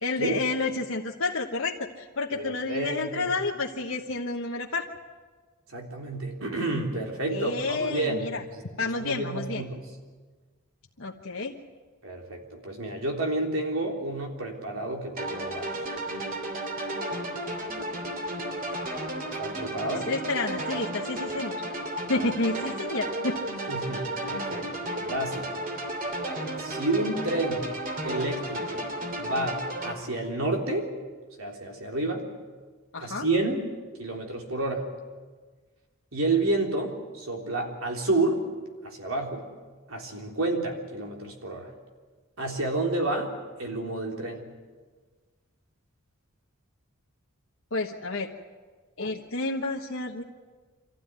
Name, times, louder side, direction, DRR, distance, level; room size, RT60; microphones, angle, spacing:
voice 1, 0.0-4.9 7.3-8.4 8.8-9.6 11.0-11.5 20.1-21.6 22.1-23.4 32.9-33.3 47.7-48.3 49.0-50.2, left 3 dB, 70° left, 0 dB, 1.3 m, -30 dB
voice 2, 2.3-3.3 5.7-8.3 8.8-9.8 12.0-15.8 19.4-20.1 22.1-22.3 23.7-25.5 26.6-27.7 28.0-28.8 29.2-30.9 31.4-32.2 33.0-33.7 34.0-34.8 36.1-38.4 38.8-39.5 39.9-41.7 42.4-43.3 43.6-44.5, right 2 dB, 75° right, 1 dB, 3.6 m, -30 dB
sound 1, 15.2-29.9, right 1 dB, 40° right, 3.0 m, -33 dB
25.0 x 15.0 x 9.6 m, 1.4 s
head